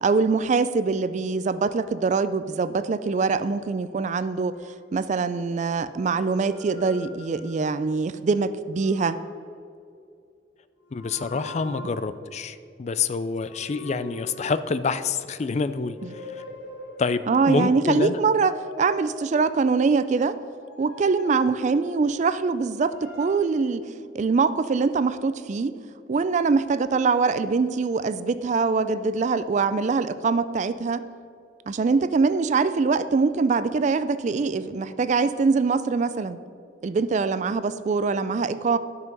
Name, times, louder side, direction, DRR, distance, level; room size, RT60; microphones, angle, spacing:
voice 1, 0.0-4.6 4.9-9.2 16.0-16.1 17.3-20.4 20.8-23.8 24.1-25.7 26.1-31.0 31.7-36.4 36.8-38.8, right 4 dB, 40° right, 13 dB, 0.3 m, -23 dB
sound 1, 4.5-5.5 6.0-8.0 8.6-9.5 10.8-12.3 13.5-15.2 15.7-17.4 18.0-19.6 20.4-22.3 22.8-23.4, left 2 dB, 85° left, 1.4 m, -43 dB
voice 2, 10.9-16.4 17.0-18.2, left 4 dB, 35° left, 13 dB, 0.4 m, -27 dB
12.0 x 5.7 x 5.3 m, 2.4 s
head